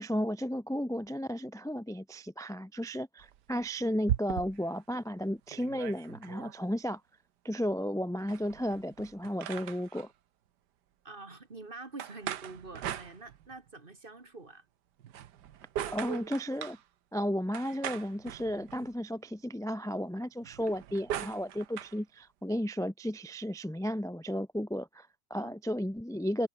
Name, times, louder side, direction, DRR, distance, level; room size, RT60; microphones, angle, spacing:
voice 1, 0.0-7.0 7.4-10.1 15.9-16.8 17.1-26.5, equal, 5° left, 0.6 m, -34 dB
sound 1, 3.2-4.8 5.2-5.3 5.5-6.6 8.2-10.1 12.0-13.7 15.0-16.8 17.5-18.9 20.4-22.0, right 11 dB, 65° right, 1.5 m, -39 dB
voice 2, 11.0-14.7 25.4-25.5, right 3 dB, 25° right, 2.2 m, -46 dB
omnidirectional pair, 2.1 m